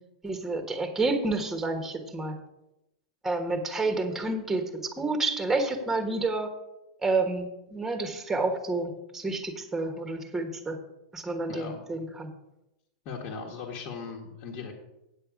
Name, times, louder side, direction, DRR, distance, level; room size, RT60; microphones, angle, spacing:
voice 1, 0.2-2.4 3.2-4.6 5.0-6.5 7.0-10.8 11.1-12.3, right 3 dB, 5° right, 5 dB, 1.3 m, -29 dB
voice 2, 11.5-11.9 13.0-14.7, left 5 dB, 45° left, -2 dB, 1.5 m, -38 dB
8.9 x 7.8 x 5.0 m, 0.91 s
supercardioid pair, 140°, 3 cm